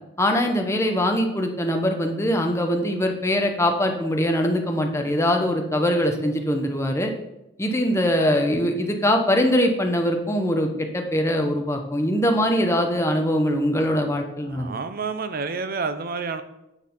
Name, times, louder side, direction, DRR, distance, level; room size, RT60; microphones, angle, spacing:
voice 1, 0.2-7.1 7.6-14.7, equal, 15° left, 4 dB, 0.9 m, -22 dB
voice 2, 14.5-16.4, right 4 dB, 50° right, 11 dB, 0.6 m, -29 dB
8.9 x 4.1 x 5.5 m, 0.90 s
head